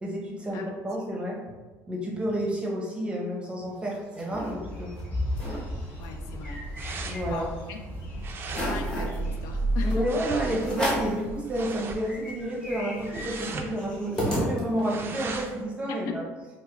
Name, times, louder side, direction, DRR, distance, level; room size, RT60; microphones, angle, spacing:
voice 1, 0.0-1.4 1.9-4.9 7.0-7.5 9.8-16.2, right 1 dB, 15° right, -2 dB, 0.7 m, -30 dB
sound 1, 3.7-4.5 5.0-5.1 5.3-5.6 6.0-7.6 8.0-8.1 8.5-9.2 9.9-10.0 10.6-11.2 11.7-11.8 12.0-15.0, equal, 10° left, 0.9 m, -33 dB
sound 2, 4.3-9.6, left 1 dB, 30° left, 1.2 m, -36 dB
sound 3, 5.4-15.6, right 2 dB, 35° right, 0.3 m, -35 dB
voice 2, 6.0-6.6 7.3-7.8 8.1-8.2 8.5-10.0 15.9-16.2, left 6 dB, 65° left, 4 dB, 0.4 m, -38 dB
4.4 x 2.1 x 2.3 m, 1.3 s
cardioid pair, 120°, 6 cm